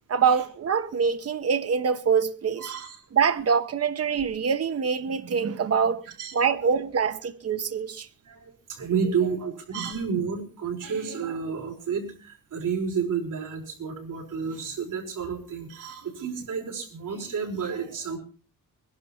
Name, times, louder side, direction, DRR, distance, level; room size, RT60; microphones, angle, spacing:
voice 1, 0.1-2.7 3.1-6.0 6.3-8.1 9.0-9.1 9.8-9.9, right 6 dB, 45° right, 1.1 m, -25 dB
voice 2, 2.6-3.0 6.2-6.3 6.6-6.7 8.2-18.2, right 6 dB, 65° right, 5.1 m, -31 dB
21.0 x 11.5 x 4.4 m
wide cardioid pair, 145°, 33 cm